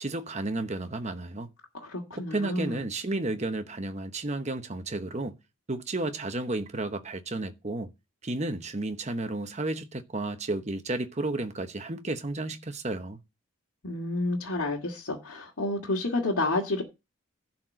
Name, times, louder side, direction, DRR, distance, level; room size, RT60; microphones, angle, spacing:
voice 1, 0.0-1.5 2.1-5.4 5.7-7.9 8.2-13.2, right 2 dB, 30° right, 0.9 m, -32 dB
voice 2, 1.7-2.8 13.8-16.8, left 2 dB, 75° left, 2.0 m, -30 dB
11.5 x 4.4 x 7.5 m
head